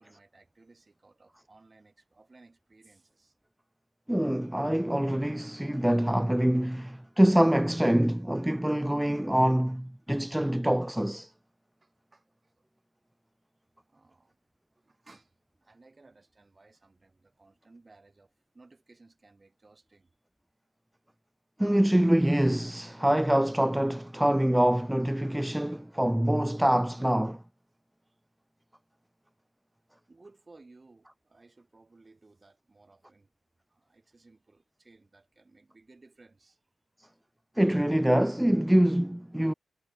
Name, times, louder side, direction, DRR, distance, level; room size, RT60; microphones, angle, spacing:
voice 1, 0.0-3.4 11.8-12.6 13.7-14.4 14.7-20.2 28.0-28.2 30.1-33.3 33.7-36.7 37.2-37.3, right 3 dB, 30° right, 8.0 m, -59 dB
voice 2, 4.1-11.3 21.6-27.4 37.6-39.5, right 1 dB, 5° right, 0.4 m, -25 dB
cardioid pair, 65°, 0 cm